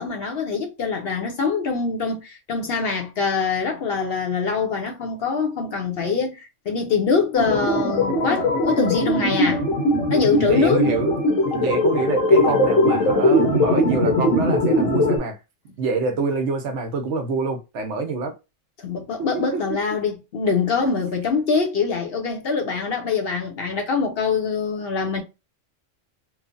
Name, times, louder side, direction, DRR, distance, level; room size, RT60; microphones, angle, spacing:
voice 1, 0.0-9.6 10.1-10.9 18.8-25.2, left 5 dB, 60° left, 0.7 m, -24 dB
sound 1, 7.4-15.2, left 1 dB, 85° left, 1.2 m, -20 dB
voice 2, 10.3-11.2 11.5-15.4 15.8-18.3 19.3-19.6, right 4 dB, 75° right, 0.9 m, -26 dB
3.0 x 2.0 x 2.5 m
omnidirectional pair, 1.3 m